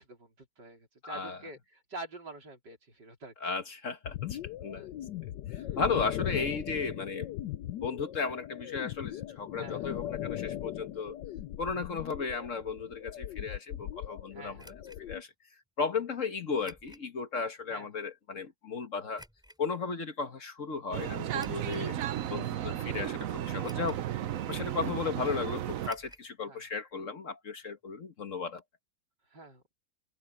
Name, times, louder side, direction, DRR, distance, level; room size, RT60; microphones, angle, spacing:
voice 1, 0.0-3.5 4.7-4.9 5.6-5.8 9.6-10.0 14.3-14.7 17.7-17.9 26.5-26.6 29.3-29.6, right 2 dB, 90° right, 5.0 m, -47 dB
voice 2, 1.0-1.4 3.4-4.9 5.5-7.3 7.7-11.2 11.6-14.6 15.0-15.3 15.8-19.2 19.6-22.0 22.3-24.0 24.5-28.6, left 5 dB, 50° left, 1.6 m, -35 dB
sound 1, 4.0-15.2, left 13 dB, 90° left, 1.3 m, -39 dB
Bedroom Chain Lamp Switch, 14.6-15.0 16.6-17.1 17.6-17.7 19.1-19.6 21.3-21.9 22.5-22.6 23.6-24.1 24.4-24.5 25.8-26.3 26.6-26.7 26.9-27.0, equal, ahead, 3.8 m, -53 dB
sound 2, 20.9-25.9, right 11 dB, 60° right, 1.0 m, -34 dB
open air
omnidirectional pair, 1.8 m